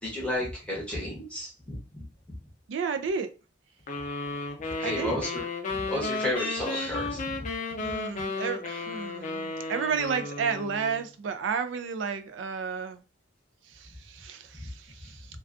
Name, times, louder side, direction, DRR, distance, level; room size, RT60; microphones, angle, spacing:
voice 1, 0.0-2.0 4.7-7.4, left 1 dB, 5° left, -4 dB, 0.7 m, -32 dB
voice 2, 2.7-3.3 4.8-5.2 7.8-13.0 13.7-15.3, right 6 dB, 75° right, 10 dB, 0.3 m, -32 dB
sound 1, 3.9-11.0, left 3 dB, 40° left, 0.4 m, -34 dB
2.3 x 2.3 x 2.4 m, 0.32 s
head